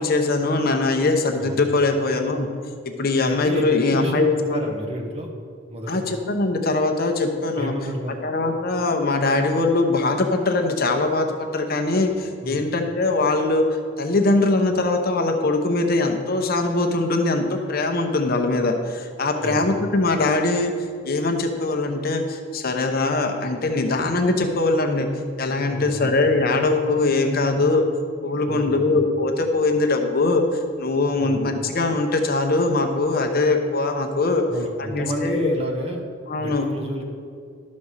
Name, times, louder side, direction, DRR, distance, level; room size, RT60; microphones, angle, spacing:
voice 1, 0.0-2.5 3.0-4.6 5.9-7.7 8.2-13.6 14.0-20.7 21.1-25.1 25.4-27.8 28.2-30.4 30.8-34.4 34.9-35.5 36.3-36.7, left 2 dB, 50° left, 4 dB, 0.8 m, -21 dB
voice 2, 3.2-5.3 5.7-6.1 7.6-8.2 12.4-12.6 19.4-19.7 25.7-26.1 28.4-28.9 31.2-31.4 34.5-36.0 36.4-37.0, equal, 30° right, 2 dB, 1.1 m, -31 dB
12.0 x 4.2 x 6.4 m, 2.3 s
head